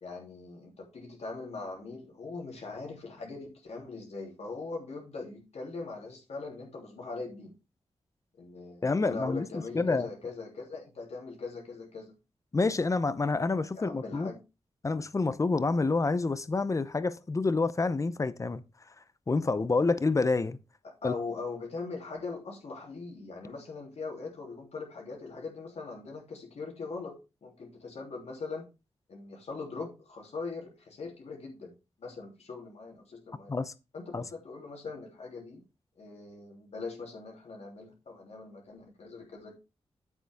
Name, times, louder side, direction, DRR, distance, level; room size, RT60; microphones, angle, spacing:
voice 1, 0.0-7.5 8.4-12.1 13.7-14.4 20.8-28.7 29.1-31.7 32.0-33.5 33.9-35.6 36.0-39.6, left 4 dB, 75° left, 3.1 m, -41 dB
voice 2, 8.8-10.1 12.5-14.3 14.8-18.6 19.3-20.6 21.0-21.1 33.5-33.7 34.1-34.3, left 3 dB, 30° left, 0.7 m, -28 dB
9.2 x 8.3 x 3.5 m
wide cardioid pair, 125°, 11 cm